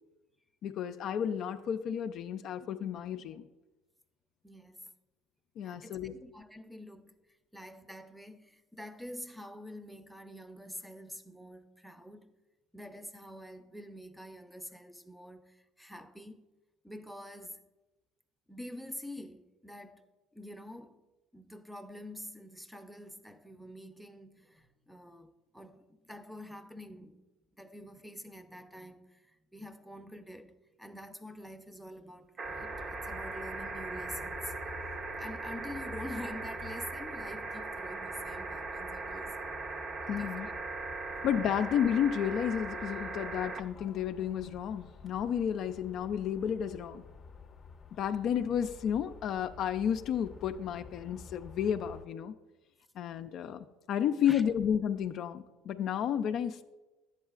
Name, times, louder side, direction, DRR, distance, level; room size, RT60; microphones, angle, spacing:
voice 1, 0.6-3.5 5.6-6.2 40.1-40.5 41.2-47.0 48.0-52.3 53.0-56.6, left 9 dB, 60° left, 0.4 m, -32 dB
voice 2, 4.4-4.9 5.6-7.1 7.5-12.3 12.7-16.5 16.8-17.6 18.5-20.1 20.3-21.0 21.3-27.2 27.6-34.5 35.2-39.6 40.2-40.5 54.3-54.4, equal, ahead, 0.6 m, -46 dB
sound 1, 32.4-52.1, left 5 dB, 35° left, 0.7 m, -50 dB
sound 2, 32.4-43.6 45.1-45.2, right 3 dB, 45° right, 0.7 m, -39 dB
10.5 x 8.0 x 2.4 m
supercardioid pair, 85°, 0 cm